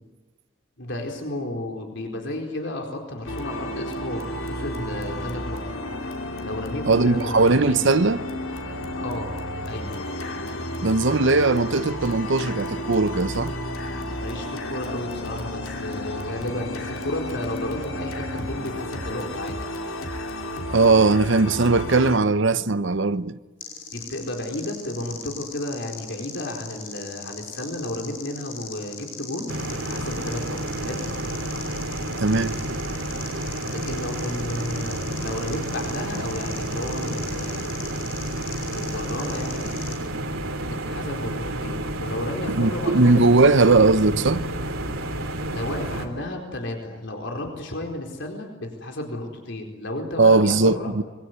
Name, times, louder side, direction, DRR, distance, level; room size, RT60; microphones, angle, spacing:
voice 1, 0.8-5.7 6.4-7.5 8.9-9.3 9.6-9.9 14.2-19.6 23.9-31.1 33.7-38.0 38.7-39.7 40.6-43.4 45.5-50.9, left 1 dB, 60° left, 4.3 m, -33 dB
sound 1, 3.2-22.2, left 1 dB, 85° left, 3.1 m, -32 dB
voice 2, 6.9-8.2 10.8-13.5 20.7-23.4 32.2-32.6 42.5-44.4 50.2-51.0, right 3 dB, 60° right, 0.9 m, -19 dB
sound 2, 23.6-40.0, left 5 dB, 45° left, 5.8 m, -40 dB
sound 3, 29.5-46.1, right 1 dB, 85° right, 3.3 m, -30 dB
25.5 x 23.0 x 9.7 m
head